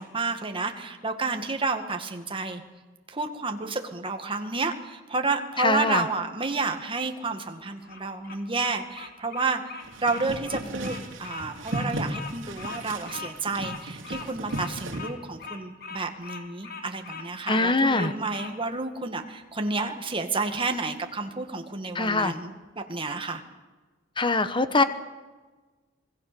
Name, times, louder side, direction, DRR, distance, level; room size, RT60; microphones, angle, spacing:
voice 1, 0.0-2.6 3.1-23.4, right 3 dB, 25° right, 5 dB, 2.0 m, -30 dB
voice 2, 5.6-6.0 17.5-18.1 21.9-22.3 24.2-24.8, left 3 dB, 25° left, 11 dB, 1.1 m, -23 dB
Bird vocalization bird call bird song, 7.7-18.5, left 4 dB, 55° left, 3.6 m, -41 dB
sound 1, 9.8-15.1, right 1 dB, 85° right, 2.8 m, -35 dB
27.0 x 19.5 x 7.0 m, 1.3 s
head